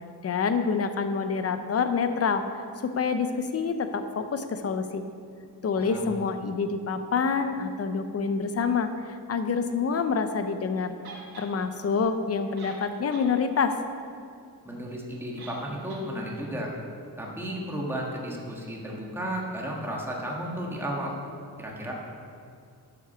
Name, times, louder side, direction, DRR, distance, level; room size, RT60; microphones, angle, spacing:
voice 1, 0.2-2.4 2.8-5.0 5.6-11.0 11.4-13.7, left 5 dB, 40° left, 9 dB, 0.7 m, -27 dB
voice 2, 5.8-6.1 14.6-16.7 17.2-21.2 21.6-21.9, equal, 5° right, -3 dB, 1.5 m, -33 dB
sound 1, 11.0-11.5 12.3-12.4 12.6-13.3 13.7-13.8 15.4-15.6 15.9-16.0, right 4 dB, 65° right, 1.8 m, -44 dB
11.5 x 6.0 x 6.0 m, 2.3 s
wide cardioid pair, 140°, 40 cm